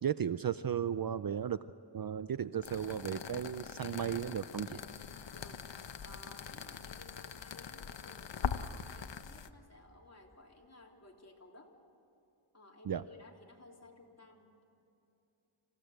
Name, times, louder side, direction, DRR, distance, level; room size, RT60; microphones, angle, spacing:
voice 1, 0.0-1.6 1.9-4.8 12.9-13.0, right 8 dB, 45° right, 14 dB, 0.6 m, -35 dB
sound 1, 2.6-9.5, left 7 dB, 60° left, 1.1 m, -42 dB
voice 2, 4.8-5.6 6.0-11.7 12.5-14.6, left 2 dB, 30° left, 0 dB, 3.5 m, -57 dB
27.0 x 16.5 x 8.0 m, 2.8 s
wide cardioid pair, 75°, 49 cm